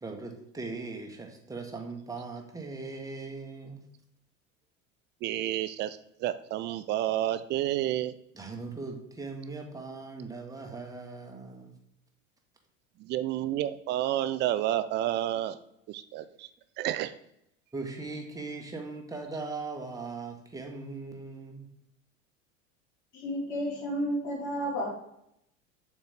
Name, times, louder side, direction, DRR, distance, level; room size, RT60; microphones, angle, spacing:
voice 1, 0.0-3.8 8.3-11.7 17.7-21.7, right 3 dB, 10° right, 1 dB, 1.3 m, -39 dB
voice 2, 5.2-8.1 13.0-15.6 15.9-16.5 16.8-17.1, right 13 dB, 30° right, 12 dB, 0.4 m, -30 dB
voice 3, 23.1-24.9, equal, 60° left, -2 dB, 2.4 m, -31 dB
6.9 x 4.2 x 3.6 m, 0.76 s
figure-of-eight pair, 75°, 39 cm